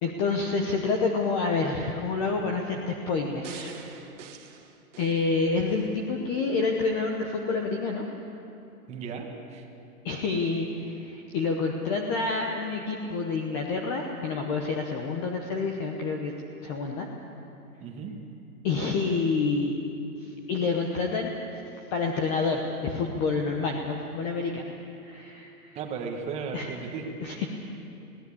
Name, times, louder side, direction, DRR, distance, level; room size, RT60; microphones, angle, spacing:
voice 1, 0.0-3.8 5.0-8.0 10.0-16.3 16.6-17.1 18.6-19.8 20.2-21.6 21.9-24.7 25.0-25.8 26.5-26.7 27.2-27.6, left 4 dB, 20° left, 2 dB, 0.9 m, -28 dB
sound 1, 3.4-5.9 6.4-6.5, right 7 dB, 50° right, 1.9 m, -45 dB
voice 2, 8.9-9.7 17.8-18.1 25.7-27.0, right 5 dB, 15° right, 2 dB, 1.4 m, -35 dB
21.5 x 17.0 x 8.5 m, 2.8 s
hypercardioid pair, 155°, 46 cm